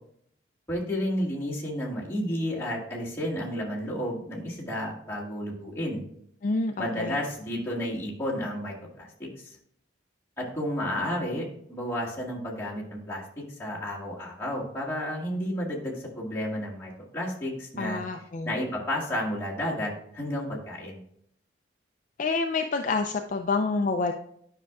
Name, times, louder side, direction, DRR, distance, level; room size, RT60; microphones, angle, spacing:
voice 1, 0.7-6.0 6.8-9.6 10.4-13.2 13.6-18.0 18.4-21.0, equal, 15° left, -6 dB, 1.8 m, -32 dB
voice 2, 6.4-7.2 17.8-18.5 22.2-24.1, left 3 dB, 40° left, 5 dB, 0.3 m, -28 dB
9.5 x 5.8 x 2.4 m, 0.68 s
head